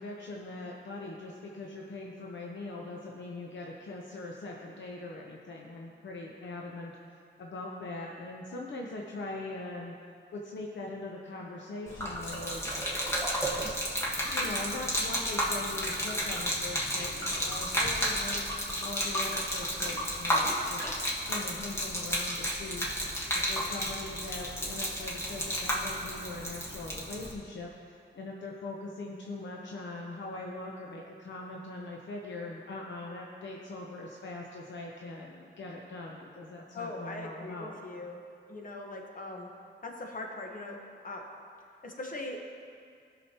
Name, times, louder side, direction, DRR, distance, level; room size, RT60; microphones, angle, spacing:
voice 1, 0.0-9.9 10.3-12.6 13.1-13.2 14.3-18.5 18.8-20.9 21.3-22.9 23.3-37.8, left 2 dB, 75° left, -2 dB, 0.8 m, -41 dB
Gurgling / Liquid, 11.9-27.3, equal, 15° left, 1.3 m, -32 dB
voice 2, 36.7-38.2 38.5-39.5 39.8-40.8 41.0-41.2 41.8-42.5, left 2 dB, 45° left, 1 dB, 1.2 m, -40 dB
16.0 x 6.1 x 2.9 m, 2.3 s
wide cardioid pair, 125°, 19 cm